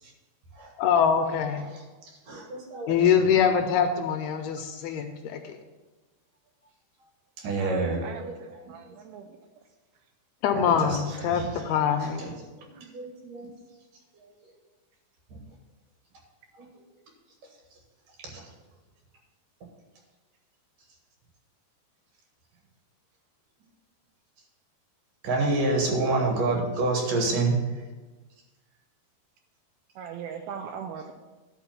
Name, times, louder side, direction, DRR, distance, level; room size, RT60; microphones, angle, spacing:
voice 1, 0.8-1.7 2.9-5.6 10.4-12.2, left 7 dB, 80° left, 6 dB, 2.3 m, -24 dB
voice 2, 1.6-3.1 7.4-8.6 10.8-11.6 12.0-12.4 12.6-13.5 14.1-14.5 15.3-15.4 16.6-16.8 18.2-18.5 25.2-27.8, right 3 dB, 60° right, 0 dB, 2.8 m, -29 dB
voice 3, 7.6-9.4 30.0-31.1, right 7 dB, 80° right, 5 dB, 2.3 m, -40 dB
11.0 x 4.2 x 7.1 m, 1.2 s
omnidirectional pair, 4.7 m